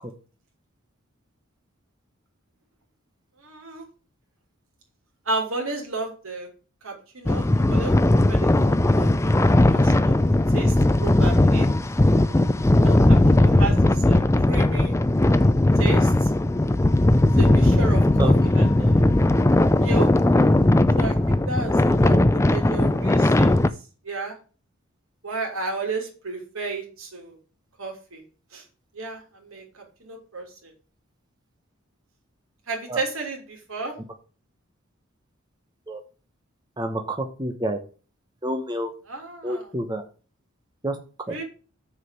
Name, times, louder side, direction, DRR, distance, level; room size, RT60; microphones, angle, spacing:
voice 1, 3.4-3.8 5.2-6.5 6.8-7.9 8.3-9.4 9.7-10.2 10.5-10.7 11.0-11.7 12.8-14.9 15.8-16.3 17.2-19.1 19.7-20.1 21.0-23.7 24.0-24.4 25.2-27.4 27.8-28.2 28.5-28.6 28.9-30.7 32.7-33.9 39.1-39.7 41.3-41.4, right 3 dB, 90° right, 2 dB, 3.0 m, -33 dB
sound 1, 7.3-23.7, left 1 dB, 15° left, 0.4 m, -18 dB
voice 2, 18.2-18.7 22.1-22.2 32.9-33.0 35.9-36.0 36.8-37.8 38.4-38.9 39.4-40.0 40.8-41.0 41.3-41.4, right 1 dB, 20° right, 4 dB, 1.0 m, -28 dB
sound 2, 18.3-23.5, left 1 dB, 55° left, 1.9 m, -46 dB
6.6 x 5.0 x 7.0 m, 0.36 s
head